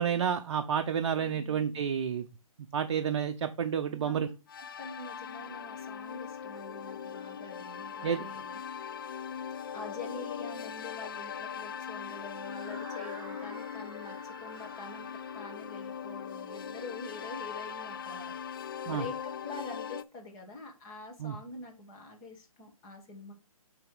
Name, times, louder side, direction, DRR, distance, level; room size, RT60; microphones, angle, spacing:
voice 1, 0.0-2.3 2.7-4.3 8.0-8.2 18.9-19.0 21.2-21.4, right 8 dB, 50° right, 8 dB, 0.6 m, -30 dB
voice 2, 3.9-4.3 4.6-8.6 9.7-15.1 15.3-18.3 18.8-23.3, left 2 dB, 20° left, 1 dB, 1.7 m, -46 dB
sound 1, 4.5-20.0, left 8 dB, 40° left, 0.4 m, -40 dB
sound 2, 12.4-18.3, right 4 dB, 30° right, 2.7 m, -53 dB
9.1 x 3.5 x 4.9 m, 0.30 s
figure-of-eight pair, 150°, 18 cm